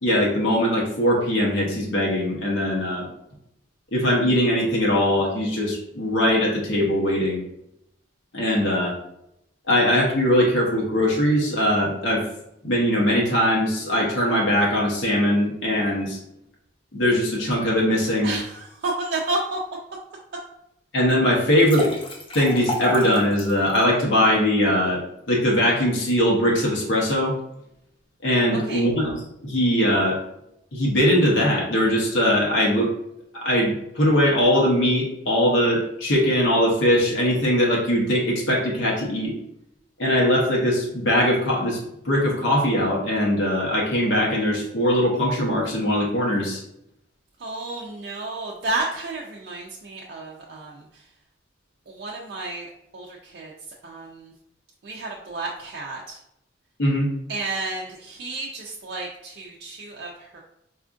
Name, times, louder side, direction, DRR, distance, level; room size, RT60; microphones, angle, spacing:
voice 1, 0.0-3.1 3.9-7.4 8.3-8.9 9.7-12.3 12.6-16.2 16.9-18.3 20.9-21.9 22.3-25.0 25.3-27.3 28.2-30.2 30.7-32.9 33.4-39.3 40.0-41.8 42.0-46.6 56.8-57.1, equal, 85° left, -2 dB, 0.9 m, -21 dB
voice 2, 18.2-19.6 28.7-28.9 47.4-51.0 51.9-53.5 53.8-54.3 54.8-56.2 57.3-60.4, right 2 dB, 55° right, -3 dB, 0.4 m, -31 dB
sound 1, 21.4-23.8, left 3 dB, 30° left, 0.5 m, -31 dB
4.2 x 2.4 x 2.4 m, 0.79 s
head